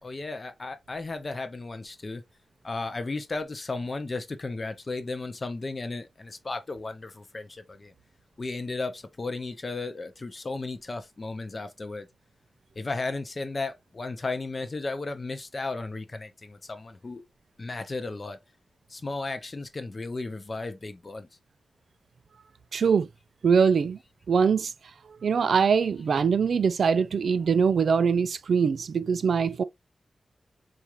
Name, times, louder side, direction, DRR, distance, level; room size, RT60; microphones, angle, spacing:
voice 1, 0.0-2.2 2.6-7.9 8.4-12.1 12.8-17.2 17.6-18.4 18.9-21.3, left 3 dB, 30° left, 0.6 m, -34 dB
voice 2, 22.7-23.1 23.4-24.0 24.3-24.7 25.2-29.6, right 6 dB, 70° right, 0.3 m, -23 dB
4.2 x 2.4 x 3.0 m
wide cardioid pair, 165°, 0 cm